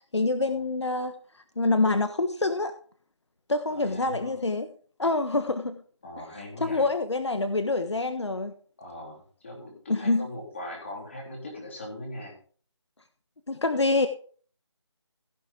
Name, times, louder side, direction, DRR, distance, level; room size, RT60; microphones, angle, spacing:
voice 1, 0.1-1.1 1.6-2.7 3.5-4.7 5.0-5.8 6.6-8.5 9.9-10.3 13.5-14.1, left 3 dB, 70° left, 8 dB, 1.3 m, -26 dB
voice 2, 3.7-4.4 6.0-6.9 8.8-12.3, left 1 dB, 25° left, -2 dB, 3.7 m, -40 dB
16.5 x 7.5 x 3.8 m, 0.43 s
figure-of-eight pair, 175°, 15 cm